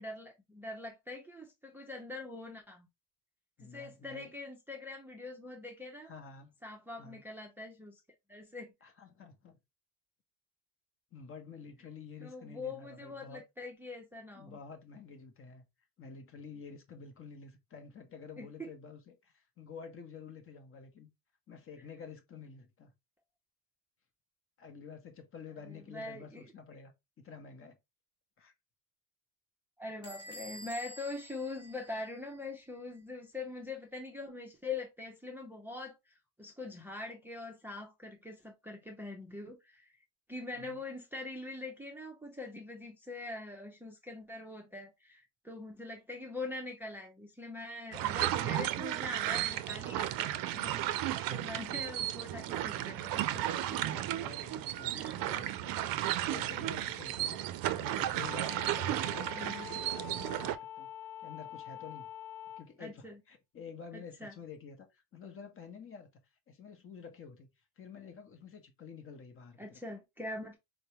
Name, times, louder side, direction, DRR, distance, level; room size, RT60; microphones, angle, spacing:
voice 1, 0.0-2.9 3.6-6.1 6.6-8.0 8.3-8.7 12.2-14.6 18.4-18.7 25.7-26.5 29.8-39.9 40.3-53.8 54.9-55.2 59.4-59.7 62.8-63.2 63.9-64.3 69.6-70.6, left 2 dB, 5° right, 0.5 m, -43 dB
voice 2, 3.6-4.3 6.0-6.6 7.0-7.2 8.8-9.6 11.1-13.4 14.3-15.7 16.0-21.1 21.5-22.9 24.6-27.8 28.4-28.5 40.5-40.8 51.5-51.8 53.7-60.9 61.2-62.1 62.6-66.1 66.5-67.5 67.8-69.8, left 5 dB, 35° left, 0.8 m, -50 dB
Bell / Squeak, 30.0-32.5, equal, 15° left, 1.0 m, -50 dB
sound 1, 47.9-60.6, right 13 dB, 60° right, 0.5 m, -34 dB
sound 2, 58.2-62.7, left 11 dB, 90° left, 0.6 m, -45 dB
4.4 x 2.1 x 2.8 m
cardioid pair, 120°, 38 cm